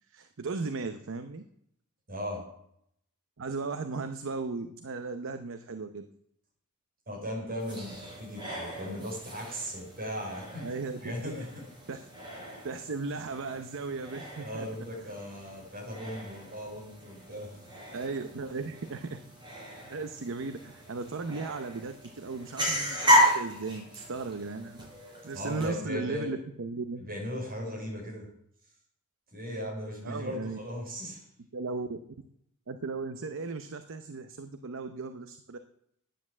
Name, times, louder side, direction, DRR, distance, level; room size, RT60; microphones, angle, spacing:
voice 1, 0.1-1.4 3.4-6.1 10.6-11.3 11.9-12.0 12.6-14.7 17.9-19.2 19.9-24.9 25.2-27.0 30.0-30.6 31.5-32.0 32.7-35.6, right 4 dB, 60° right, 8 dB, 0.7 m, -36 dB
voice 2, 2.1-2.4 7.1-10.8 11.0-11.7 14.4-17.6 25.3-26.4 27.0-28.3 29.3-31.2, equal, 45° right, -2 dB, 5.3 m, -37 dB
sound 1, 7.6-25.7, equal, 20° right, 4.6 m, -33 dB
10.0 x 9.8 x 7.4 m, 0.74 s
head